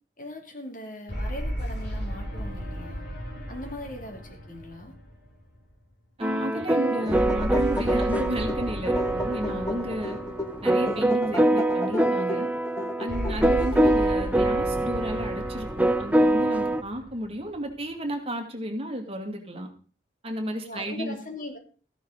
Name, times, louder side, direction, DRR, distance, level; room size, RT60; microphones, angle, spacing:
voice 1, 0.2-3.0 3.5-5.0 9.4-9.8 13.3-13.5 20.6-21.6, left 1 dB, 50° left, 3 dB, 2.8 m, -40 dB
sound 1, 1.1-5.7 7.1-11.5 13.1-17.7, equal, 65° left, 6.2 m, -35 dB
sound 2, 6.2-16.8, right 1 dB, 10° right, 0.5 m, -25 dB
voice 2, 6.2-10.2 10.6-12.5 13.0-19.7 20.2-21.2, equal, 35° right, 3 dB, 2.3 m, -32 dB
sound 3, 6.8-14.4, left 1 dB, 20° left, 1.3 m, -35 dB
14.5 x 11.5 x 4.0 m, 0.40 s
head